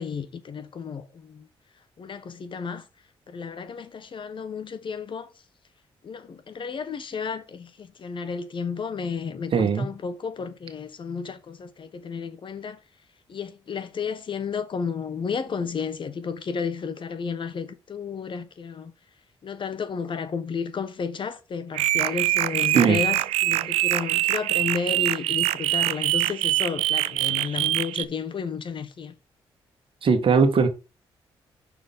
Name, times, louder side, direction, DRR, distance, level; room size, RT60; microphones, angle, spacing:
voice 1, 0.0-1.5 2.0-2.9 3.3-5.3 6.0-12.8 13.3-18.9 19.4-29.2, left 5 dB, 50° left, 1.2 m, -32 dB
voice 2, 9.5-9.9 22.7-23.0 30.0-30.7, right 5 dB, 55° right, 1.7 m, -19 dB
wave sequence, 21.7-28.0, right 15 dB, 85° right, 0.4 m, -24 dB
5.7 x 4.7 x 5.7 m
supercardioid pair, 55°, 11 cm